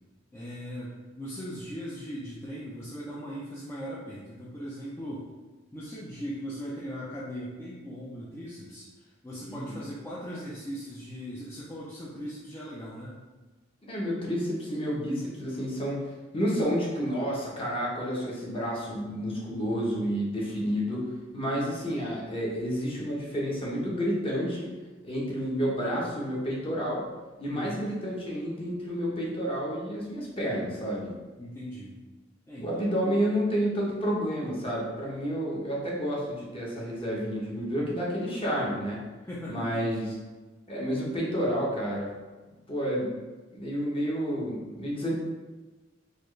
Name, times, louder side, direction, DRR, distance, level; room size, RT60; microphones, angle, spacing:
voice 1, 0.3-5.3 5.7-13.2 21.5-21.8 27.5-27.8 31.4-31.9 32.5-33.1 39.3-40.1, equal, 10° left, -7 dB, 0.5 m, -39 dB
voice 2, 13.8-21.1 21.3-24.7 25.0-27.0 27.4-31.1 32.6-39.0 39.5-40.1 40.7-42.1 42.7-43.1 43.5-45.1, equal, 30° left, -5 dB, 0.9 m, -30 dB
4.2 x 2.4 x 3.1 m, 1.2 s
head